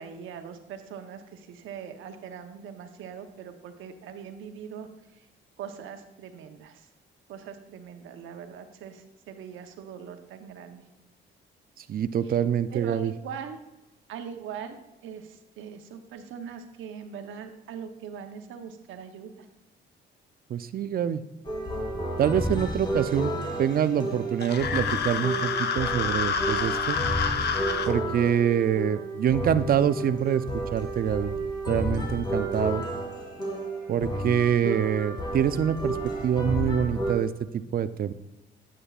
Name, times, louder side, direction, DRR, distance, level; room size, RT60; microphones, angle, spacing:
voice 1, 0.0-4.9 5.2-5.3 5.6-6.9 7.3-10.8 12.3-12.4 12.7-13.6 14.1-14.7 15.0-19.5, right 7 dB, 85° right, 7 dB, 0.9 m, -41 dB
voice 2, 11.8-13.1 20.5-21.2 22.2-23.3 23.6-27.0 27.9-31.4 31.7-32.8 33.9-36.0 36.2-38.1, right 9 dB, 50° right, 13 dB, 0.5 m, -25 dB
sound 1, 21.4-37.1, right 1 dB, 20° left, 2.1 m, -31 dB
sound 2, 24.4-27.9, left 6 dB, 55° left, 0.7 m, -28 dB
9.9 x 8.8 x 2.4 m, 0.98 s
cardioid pair, 90°, 20 cm